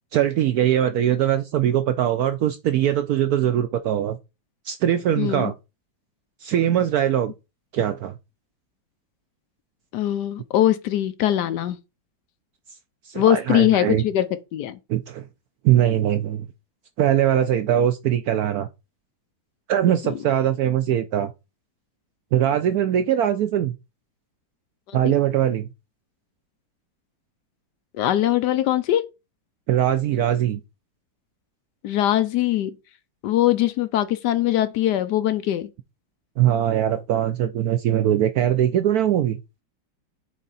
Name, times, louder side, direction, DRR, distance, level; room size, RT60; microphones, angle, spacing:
voice 1, 0.1-4.2 4.6-5.5 6.4-7.3 7.7-8.1 13.0-14.0 14.9-15.2 15.6-16.5 17.0-18.7 19.7-21.3 22.3-23.8 24.9-25.7 29.7-30.6 36.4-39.4, right 11 dB, 80° right, 0.8 m, -21 dB
voice 2, 5.2-5.5 9.9-11.8 13.1-14.3 14.5-14.8 20.1-20.2 24.9-25.1 27.9-29.1 31.8-32.8 33.2-35.7, left 12 dB, 70° left, 1.1 m, -21 dB
6.5 x 4.2 x 4.0 m
omnidirectional pair, 2.1 m